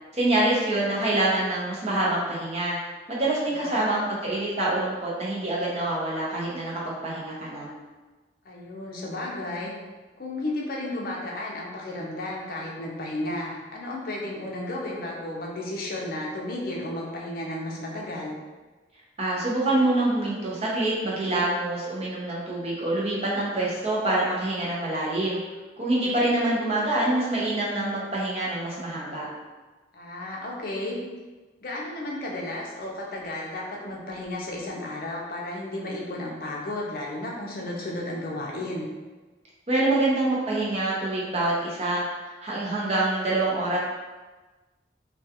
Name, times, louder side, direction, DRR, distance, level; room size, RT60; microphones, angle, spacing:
voice 1, 0.1-2.8 3.1-7.7 19.2-25.4 25.8-29.3 39.7-42.0 42.4-43.8, right 2 dB, 35° right, -5 dB, 0.6 m, -26 dB
voice 2, 3.5-4.1 8.4-9.7 10.2-18.4 25.8-26.3 29.9-31.0 31.6-38.9, left 1 dB, 55° left, -2 dB, 0.5 m, -33 dB
2.3 x 2.2 x 2.7 m, 1.2 s
head